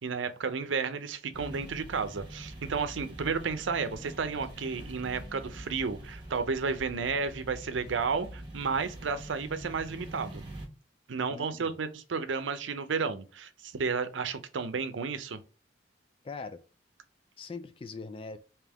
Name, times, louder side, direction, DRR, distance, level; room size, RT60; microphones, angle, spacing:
voice 1, 0.0-10.4 11.1-15.4, right 5 dB, 90° right, 0.6 m, -32 dB
sound 1, 1.3-10.7, right 1 dB, 25° right, 0.9 m, -44 dB
voice 2, 11.3-11.8 16.2-16.6 17.4-18.4, left 4 dB, 30° left, 0.3 m, -41 dB
3.5 x 2.9 x 3.4 m
head